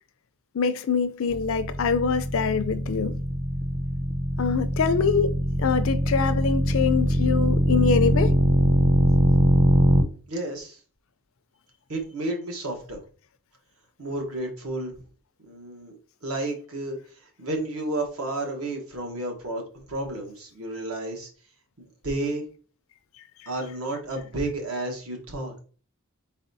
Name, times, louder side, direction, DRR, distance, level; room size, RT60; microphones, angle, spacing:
voice 1, 0.5-3.2 4.4-8.3, left 5 dB, 60° left, 0.4 m, -24 dB
sound 1, 1.3-10.0, equal, 15° right, 0.5 m, -22 dB
voice 2, 10.3-10.8 11.9-13.0 14.0-15.0 15.4-15.9 16.2-21.3 21.8-22.4 23.5-25.5, right 2 dB, 75° right, 1.3 m, -31 dB
4.1 x 4.0 x 2.7 m
head